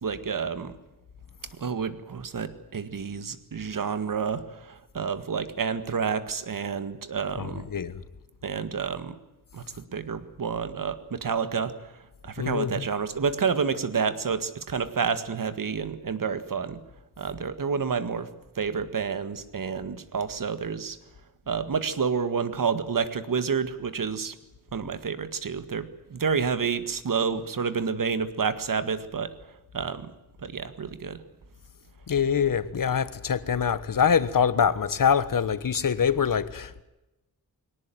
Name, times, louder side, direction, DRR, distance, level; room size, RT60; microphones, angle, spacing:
voice 1, 0.0-0.8 1.6-7.7 8.4-9.2 9.5-11.7 12.2-16.8 17.2-18.3 18.5-21.0 21.5-24.3 24.7-29.3 29.7-30.1 30.4-31.2, right 6 dB, 55° right, 11 dB, 1.9 m, -29 dB
voice 2, 7.4-8.0 12.4-12.8 32.1-36.8, left 7 dB, 55° left, 14 dB, 1.4 m, -24 dB
23.0 x 18.5 x 9.2 m, 0.99 s
wide cardioid pair, 130°, 38 cm